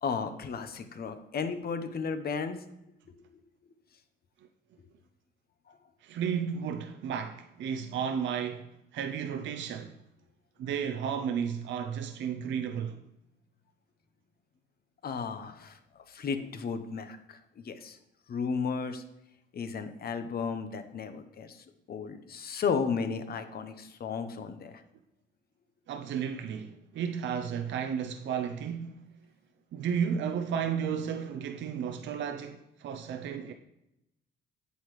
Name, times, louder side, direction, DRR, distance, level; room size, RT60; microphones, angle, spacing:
voice 1, 0.0-2.6 3.1-3.4 5.7-5.8 15.0-18.0 18.3-19.0 19.5-24.8, left 5 dB, 50° left, 0.9 m, -34 dB
voice 2, 6.0-8.7 8.9-10.0 10.6-13.0 25.9-29.0 29.7-33.5, right 7 dB, 70° right, 0.6 m, -33 dB
8.2 x 7.7 x 3.2 m
cardioid pair, 90°, 20 cm